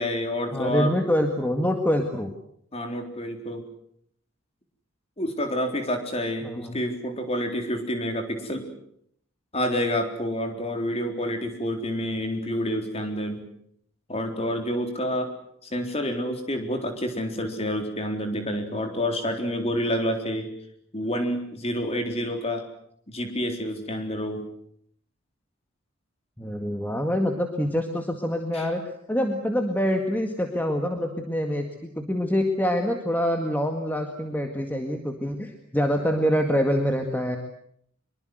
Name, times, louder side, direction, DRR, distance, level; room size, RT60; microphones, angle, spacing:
voice 1, 0.0-0.9 2.7-3.6 5.2-8.7 9.5-13.4 14.1-15.3 15.6-20.5 20.9-22.7 23.1-24.5 28.5-28.7, equal, 30° left, 5 dB, 4.1 m, -28 dB
voice 2, 0.5-2.3 6.4-6.8 26.4-28.8 29.1-37.4, equal, 10° left, 4 dB, 2.0 m, -25 dB
24.5 x 23.5 x 8.0 m, 0.69 s
head